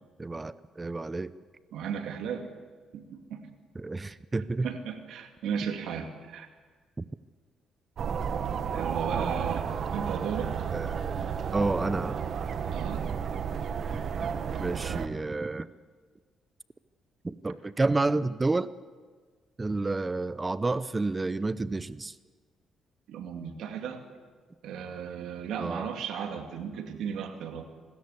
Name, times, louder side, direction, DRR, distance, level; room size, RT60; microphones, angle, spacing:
voice 1, 0.2-1.3 3.7-4.7 7.0-7.1 10.7-11.1 11.5-12.2 14.6-15.7 17.2-18.7 19.6-22.1 25.6-25.9, right 3 dB, 20° right, 15 dB, 0.6 m, -30 dB
voice 2, 1.7-2.5 2.9-3.4 4.6-6.5 8.7-10.7 12.7-13.1 23.1-24.0 24.6-27.7, right 7 dB, 80° right, 5 dB, 2.4 m, -35 dB
sound 1, 8.0-15.1, right 7 dB, 60° right, 1.4 m, -32 dB
25.0 x 13.5 x 8.4 m, 1.5 s
cardioid pair, 90°, 0 cm